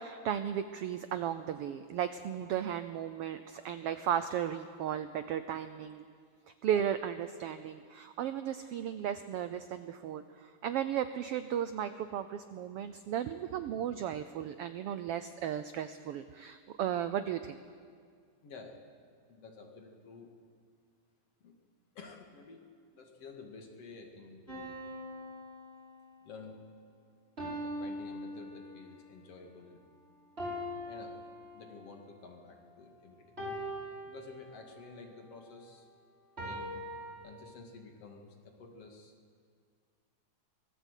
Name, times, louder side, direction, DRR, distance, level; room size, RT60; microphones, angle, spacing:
voice 1, 0.0-6.0 6.6-17.6, right 9 dB, 80° right, 11 dB, 1.3 m, -35 dB
voice 2, 18.4-18.8 19.3-20.3 21.4-21.5 21.9-24.8 26.2-26.6 27.6-29.8 30.9-31.2 31.5-33.4 34.0-35.9 36.4-36.8 37.2-39.1, left 4 dB, 55° left, 2 dB, 3.2 m, -51 dB
sound 1, 24.5-26.3 27.4-29.0 30.4-32.0 33.4-34.9 36.4-37.1, equal, 20° right, 5.3 m, -42 dB
24.0 x 19.0 x 8.2 m, 2.1 s
omnidirectional pair, 3.5 m